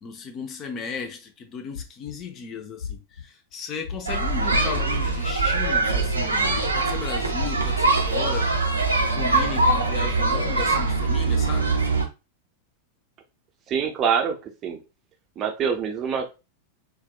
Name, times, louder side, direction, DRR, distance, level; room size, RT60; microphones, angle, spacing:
voice 1, 0.0-8.7 9.0-11.7, left 5 dB, 30° left, 0.5 m, -35 dB
sound 1, 1.7-2.2 2.8-3.2 3.8-4.3 4.7-5.1 5.6-6.0 6.5-6.9 7.3-8.0 8.3-8.8 9.3-9.7 10.3-10.7, left 6 dB, 75° left, 0.7 m, -35 dB
sound 2, 4.1-12.1, right 3 dB, 80° right, 0.5 m, -23 dB
voice 2, 13.7-14.8 15.4-16.3, right 7 dB, 30° right, 0.6 m, -25 dB
4.1 x 2.2 x 2.3 m
figure-of-eight pair, 90°, 0 cm